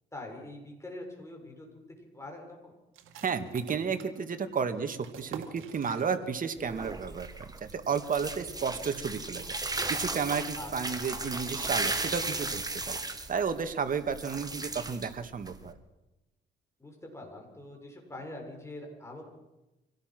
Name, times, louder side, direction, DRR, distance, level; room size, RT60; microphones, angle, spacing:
voice 1, 0.1-1.7 2.1-2.8 10.5-11.0 16.8-19.2, left 1 dB, 15° left, 1 dB, 6.9 m, -44 dB
sound 1, 2.9-6.6 6.9-7.0 7.4-7.9, right 7 dB, 85° right, 2.0 m, -48 dB
voice 2, 3.2-9.4 9.9-13.0 13.3-15.8, right 6 dB, 45° right, 8 dB, 1.9 m, -32 dB
sound 2, 6.6-15.7, right 2 dB, 20° right, 2.1 m, -36 dB
25.0 x 17.5 x 6.1 m, 0.99 s
cardioid pair, 90°, 20 cm